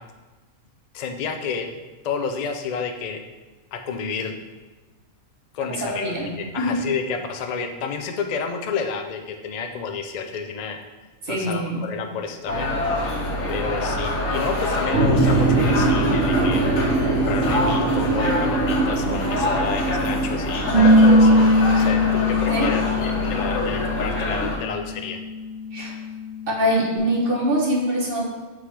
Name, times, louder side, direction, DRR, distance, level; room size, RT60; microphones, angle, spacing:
voice 1, 0.9-1.7 2.0-3.3 3.7-4.3 5.5-10.8 11.3-12.7 13.5-16.6 17.1-25.2, left 5 dB, 55° left, 5 dB, 0.4 m, -30 dB
voice 2, 5.8-6.8 11.2-11.8 22.5-22.7 25.7-25.9 26.5-28.3, equal, 45° right, -2 dB, 1.2 m, -24 dB
sound 1, 12.5-24.6, left 1 dB, 80° left, 1.6 m, -25 dB
sound 2, 14.9-21.2, right 3 dB, 85° right, 1.2 m, -22 dB
Bass guitar, 20.7-27.0, left 1 dB, 25° right, 1.3 m, -20 dB
8.2 x 3.8 x 3.3 m, 1.2 s
omnidirectional pair, 1.4 m